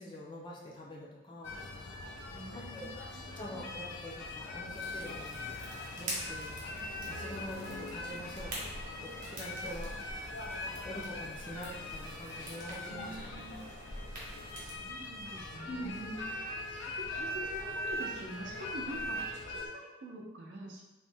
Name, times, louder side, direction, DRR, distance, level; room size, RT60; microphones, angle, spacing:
voice 1, 0.0-1.6 2.5-2.9 3.4-5.3 6.0-6.6 7.1-10.0 10.8-13.1 13.5-13.7 15.7-16.2, equal, 25° left, -3 dB, 0.4 m, -45 dB
sound 1, 1.4-19.7, left 1 dB, 85° left, 0.4 m, -41 dB
voice 2, 2.2-3.4 12.9-13.6 14.5-16.3 16.6-20.8, right 1 dB, 75° right, 0 dB, 0.5 m, -46 dB
sound 2, 4.7-14.7, right 1 dB, 45° right, 0.9 m, -47 dB
3.0 x 2.1 x 3.3 m, 1.1 s
head